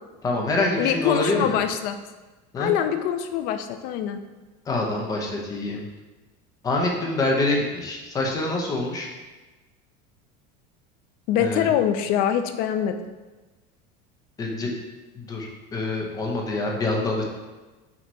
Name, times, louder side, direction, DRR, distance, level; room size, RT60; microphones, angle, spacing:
voice 1, 0.2-1.6 2.5-2.7 4.7-5.9 6.6-9.1 11.4-11.7 14.4-14.7 15.1-17.2, left 2 dB, 15° left, 0 dB, 0.8 m, -26 dB
voice 2, 0.8-2.0 2.6-4.2 11.3-12.9, left 9 dB, 45° left, 9 dB, 0.4 m, -24 dB
6.0 x 2.9 x 5.5 m, 1.2 s
cardioid pair, 170°, 21 cm